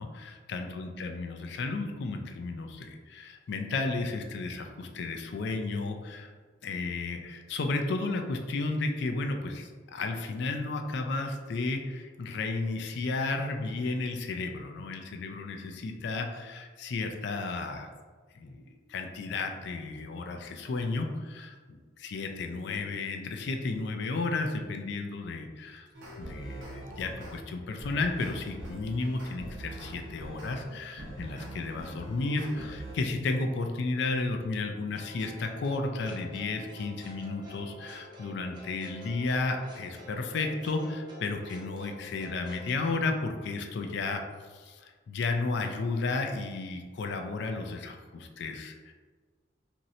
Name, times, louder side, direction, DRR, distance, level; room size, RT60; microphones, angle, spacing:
voice 1, 0.0-6.3 6.6-17.9 18.3-25.9 26.2-44.2 44.5-48.9, left 3 dB, 60° left, 4 dB, 0.4 m, -33 dB
sound 1, 25.9-27.4 27.8-33.0, right 1 dB, 70° right, 0.8 m, -43 dB
sound 2, 34.9-42.7, right 2 dB, 25° right, 0.5 m, -49 dB
3.1 x 2.6 x 2.7 m, 1.5 s
head